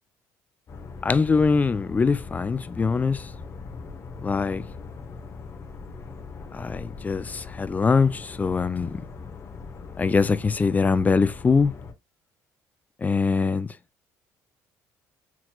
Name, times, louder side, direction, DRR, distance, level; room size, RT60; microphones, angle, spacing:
sound 1, 0.7-11.9, left 4 dB, 45° left, 0.9 m, -40 dB
voice 1, 1.0-3.3 4.2-4.6 6.5-9.0 10.0-11.7 13.0-13.7, left 4 dB, 25° left, 0.4 m, -23 dB
6.0 x 2.9 x 2.3 m
cardioid pair, 90°, 7 cm